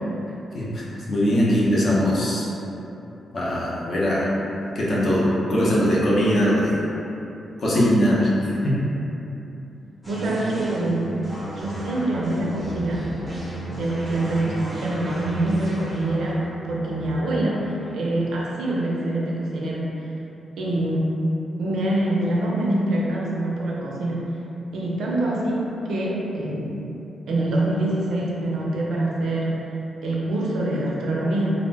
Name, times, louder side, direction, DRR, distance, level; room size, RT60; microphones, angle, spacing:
voice 1, 0.5-2.5 3.3-4.3 4.7-6.8 7.6-8.8, equal, 50° left, -7 dB, 0.6 m, -21 dB
sound 1, 10.0-19.5, right 1 dB, 10° left, 0.7 m, -34 dB
voice 2, 10.1-11.1 11.5-13.1 13.8-16.4 16.7-20.1 20.6-21.2 21.6-24.2 24.7-26.8 27.3-29.6 30.0-31.5, right 1 dB, 85° right, -4 dB, 0.5 m, -25 dB
2.4 x 2.0 x 3.3 m, 2.9 s
wide cardioid pair, 145°, 0 cm